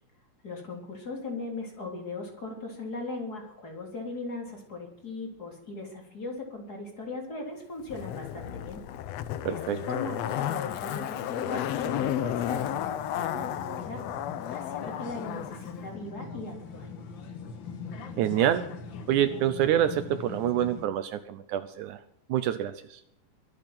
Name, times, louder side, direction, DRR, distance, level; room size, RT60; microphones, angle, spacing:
voice 1, 0.4-8.8 9.5-14.0 14.5-16.9, left 3 dB, 30° left, 1 dB, 3.9 m, -38 dB
Zipper (clothing), 7.9-15.5 15.8-15.9, left 11 dB, 75° left, 1.6 m, -33 dB
voice 2, 9.5-9.8 18.2-18.7 19.1-22.0 22.3-23.0, right 11 dB, 75° right, 12 dB, 2.1 m, -27 dB
sound 1, 11.9-20.8, left 4 dB, 50° left, 1.6 m, -41 dB
22.5 x 8.8 x 6.0 m, 0.76 s
omnidirectional pair, 3.8 m